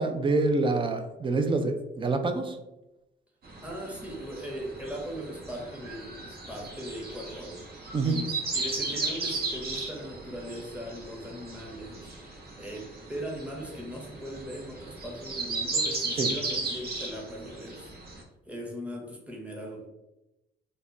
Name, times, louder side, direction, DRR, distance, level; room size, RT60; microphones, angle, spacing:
voice 1, 0.0-2.6 7.9-8.2 16.2-16.3, right 3 dB, 25° right, 7 dB, 0.4 m, -26 dB
sound 1, 3.4-18.2, right 3 dB, 55° right, 0.7 m, -36 dB
voice 2, 3.6-7.6 8.0-12.1 12.5-17.9 18.5-19.9, equal, 5° right, -1 dB, 0.8 m, -39 dB
2.1 x 2.1 x 3.6 m, 0.95 s
cardioid pair, 90°, 20 cm